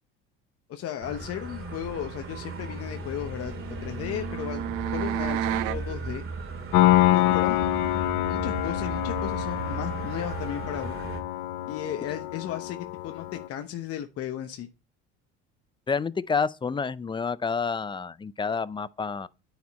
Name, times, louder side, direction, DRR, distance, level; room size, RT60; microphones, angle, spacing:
voice 1, 0.7-3.5 3.8-4.6 4.9-6.2 7.1-7.7 8.3-11.0 11.7-12.8 13.0-14.7, left 10 dB, 55° left, 1.0 m, -35 dB
sound 1, 1.0-11.2, right 3 dB, 45° right, 2.1 m, -36 dB
sound 2, 3.2-5.8, right 9 dB, 85° right, 0.7 m, -31 dB
Piano, 6.7-13.5, left 15 dB, 80° left, 0.6 m, -26 dB
voice 2, 15.9-19.3, left 5 dB, 15° left, 0.4 m, -29 dB
9.2 x 5.2 x 4.1 m
supercardioid pair, 90°, 29 cm